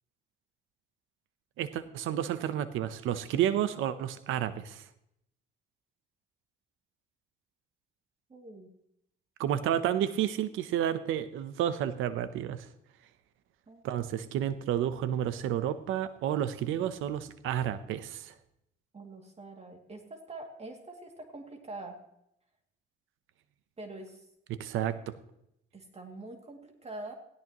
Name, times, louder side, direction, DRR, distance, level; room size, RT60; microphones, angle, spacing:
voice 1, 1.6-4.8 9.4-12.7 13.8-18.3 24.5-25.1, right 10 dB, 90° right, 13 dB, 0.8 m, -31 dB
voice 2, 8.3-8.7 13.7-13.8 18.9-22.0 23.8-24.3 25.7-27.1, right 2 dB, 30° right, 3 dB, 2.4 m, -44 dB
17.5 x 16.5 x 3.0 m, 0.78 s
cardioid pair, 90°, 20 cm